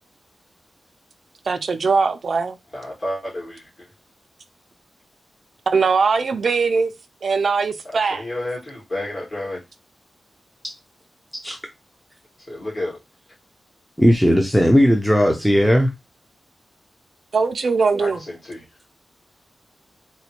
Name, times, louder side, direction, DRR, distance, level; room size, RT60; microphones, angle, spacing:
voice 1, 1.5-2.6 5.7-6.9 7.2-8.2 17.3-18.2, right 4 dB, 60° right, 0.4 m, -20 dB
voice 2, 2.7-3.9 8.1-9.6 12.4-13.0 18.0-18.7, left 1 dB, 45° left, 2.1 m, -31 dB
voice 3, 14.0-15.9 17.9-18.0, equal, ahead, 0.5 m, -16 dB
4.0 x 2.2 x 2.9 m
wide cardioid pair, 105°, 0 cm